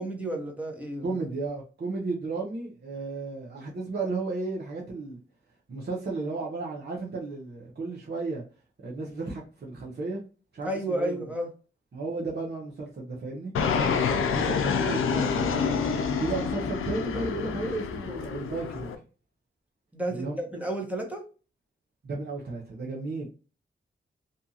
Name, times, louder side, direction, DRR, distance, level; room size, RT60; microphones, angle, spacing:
voice 1, 0.0-1.1 10.6-11.5 15.2-15.3 19.9-21.3, right 1 dB, 5° right, 0.9 m, -32 dB
voice 2, 1.0-5.2 5.7-8.4 8.8-10.2 10.5-11.2 11.9-13.5 14.2-15.6 16.2-18.9 20.1-20.4 22.0-23.3, right 3 dB, 50° right, 0.8 m, -33 dB
Fixed-wing aircraft airplane, 13.5-18.9, left 6 dB, 90° left, 0.4 m, -27 dB
2.7 x 2.3 x 2.7 m
cardioid pair, 60°, 21 cm